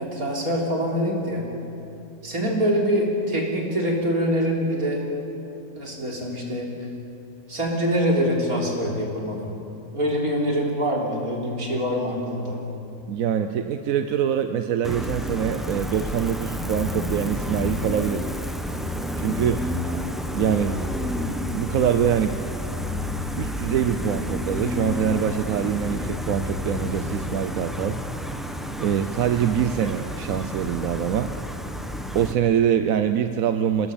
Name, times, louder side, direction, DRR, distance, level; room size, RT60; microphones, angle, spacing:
voice 1, 0.0-1.5 2.2-5.0 5.7-6.7 7.5-9.5 9.9-12.6, equal, 90° right, -2 dB, 4.2 m, -24 dB
voice 2, 13.1-18.3 19.2-19.7 20.3-20.8 21.5-22.4 23.4-28.0 28.8-31.3 32.1-33.9, right 9 dB, 75° right, 8 dB, 1.2 m, -24 dB
Gull seagull, 14.8-32.3, left 1 dB, ahead, 1.0 m, -30 dB
27.0 x 19.0 x 7.2 m, 2.9 s
omnidirectional pair, 1.5 m